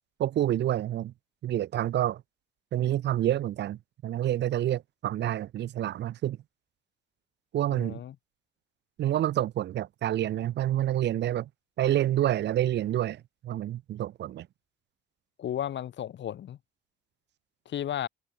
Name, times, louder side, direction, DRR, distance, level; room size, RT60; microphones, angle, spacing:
voice 1, 0.2-1.1 1.4-2.2 2.7-6.4 7.5-8.0 9.0-11.5 11.8-14.5, right 12 dB, 60° right, 0.6 m, -28 dB
voice 2, 7.7-8.1 15.4-16.6 17.7-18.1, left 10 dB, 65° left, 2.1 m, -34 dB
cardioid pair, 90°, 20 cm